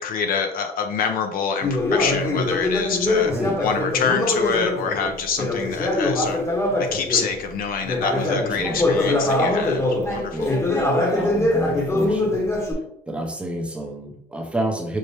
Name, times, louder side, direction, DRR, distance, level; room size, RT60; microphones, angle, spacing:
voice 1, 0.0-3.3 3.6-6.4 6.8-10.5, left 6 dB, 60° left, 5 dB, 0.5 m, -26 dB
Conversation, 1.6-7.4 7.8-12.7, left 2 dB, 15° left, 0.9 m, -23 dB
voice 2, 3.2-3.6 8.5-8.8 10.3-10.8 11.0-12.5 13.1-15.0, right 1 dB, 5° right, 1 dB, 0.6 m, -29 dB
5.4 x 2.0 x 3.2 m, 0.74 s
cardioid pair, 110°, 17 cm